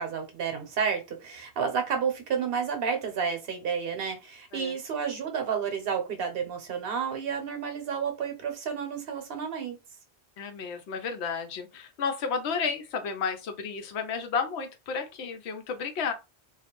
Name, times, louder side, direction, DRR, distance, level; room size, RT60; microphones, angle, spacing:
voice 1, 0.0-9.8, right 6 dB, 70° right, 0.9 m, -31 dB
voice 2, 10.4-16.1, left 5 dB, 90° left, 0.9 m, -32 dB
2.3 x 2.0 x 2.9 m
omnidirectional pair, 1.1 m